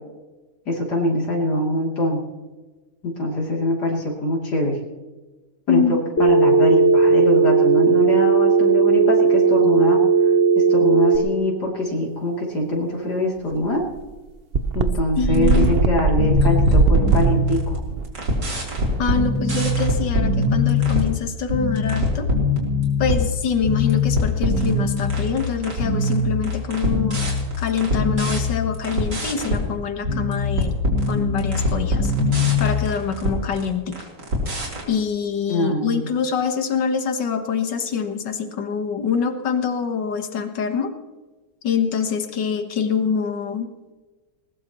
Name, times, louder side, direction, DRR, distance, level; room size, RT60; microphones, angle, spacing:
voice 1, 0.7-2.2 3.0-4.8 5.7-10.0 10.6-13.8 14.7-17.8 35.5-36.0, left 1 dB, 70° left, -2 dB, 3.6 m, -23 dB
voice 2, 5.7-6.0 15.2-15.7 19.0-22.3 23.0-30.8 31.1-32.1 32.6-34.1 34.9-40.9 41.6-43.9, left 6 dB, 85° left, 6 dB, 2.0 m, -25 dB
Telephone, 6.2-11.2, right 5 dB, 40° left, 1.6 m, -16 dB
sound 1, 13.5-13.6 13.9-14.0 14.5-19.7, right 4 dB, 45° right, 0.8 m, -21 dB
sound 2, 15.3-15.8 16.1-17.8 18.1-21.1 21.5-23.3 23.6-29.6 30.0-33.7 33.9-34.8, left 2 dB, 85° right, 4.3 m, -22 dB
20.5 x 20.0 x 3.1 m, 1.2 s
omnidirectional pair, 1.8 m